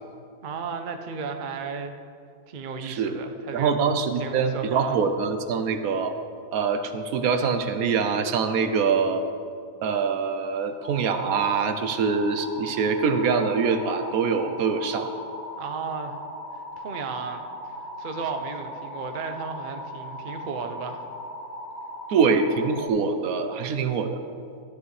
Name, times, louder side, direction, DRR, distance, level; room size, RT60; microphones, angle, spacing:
voice 1, 0.4-1.9 2.5-3.8 4.2-5.0 15.6-16.2 16.8-17.5 18.0-21.0, right 5 dB, 50° right, 6 dB, 0.6 m, -34 dB
voice 2, 2.8-3.2 3.5-6.1 6.5-9.2 9.8-15.1 22.1-24.2, right 5 dB, 70° right, 8 dB, 1.1 m, -24 dB
sound 1, 10.8-22.9, left 1 dB, 40° left, 2.3 m, -38 dB
13.0 x 9.6 x 3.2 m, 2.3 s
omnidirectional pair, 1.6 m